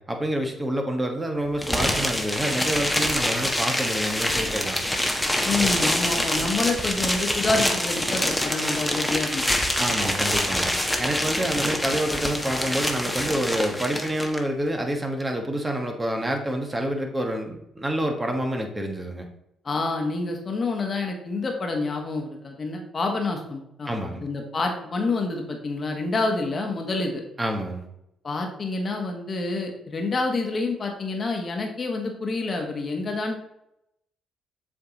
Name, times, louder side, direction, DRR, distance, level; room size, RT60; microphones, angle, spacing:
voice 1, 0.0-4.8 9.8-19.3 23.9-24.2 27.4-27.9, right 1 dB, 20° right, 3 dB, 1.4 m, -28 dB
sound 1, 1.6-14.4, left 1 dB, 10° left, 1.2 m, -25 dB
voice 2, 5.4-9.5 19.6-23.9 24.2-27.2 28.2-33.4, left 3 dB, 45° left, 3 dB, 1.4 m, -28 dB
7.3 x 3.4 x 4.0 m, 0.80 s
hypercardioid pair, 50°, 0 cm